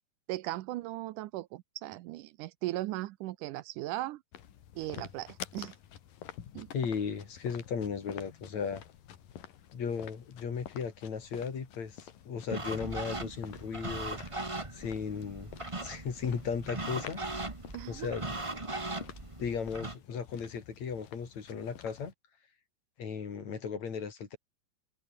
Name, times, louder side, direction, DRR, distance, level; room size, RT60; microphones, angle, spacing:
voice 1, 0.3-4.2 4.8-5.8 6.6-6.7 17.7-18.1, right 16 dB, 80° right, 2.1 m, -38 dB
sound 1, 4.3-22.1, left 10 dB, 90° left, 3.7 m, -50 dB
voice 2, 6.7-8.8 9.7-14.2 14.7-15.5 15.8-17.2 17.9-18.3 19.4-22.1 23.0-24.4, left 6 dB, 55° left, 4.2 m, -36 dB
sound 2, 12.5-20.0, right 2 dB, 15° right, 1.0 m, -39 dB
omnidirectional pair, 3.8 m